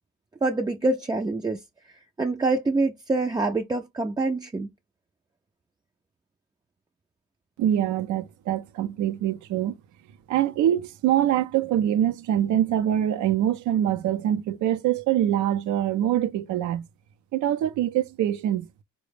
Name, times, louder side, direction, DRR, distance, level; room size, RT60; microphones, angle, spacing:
voice 1, 0.4-1.6 2.2-4.7, right 3 dB, 15° right, 0.3 m, -25 dB
voice 2, 7.6-9.8 10.3-16.9 17.3-18.7, right 11 dB, 75° right, 0.5 m, -24 dB
3.9 x 2.1 x 3.2 m
cardioid pair, 90°, 30 cm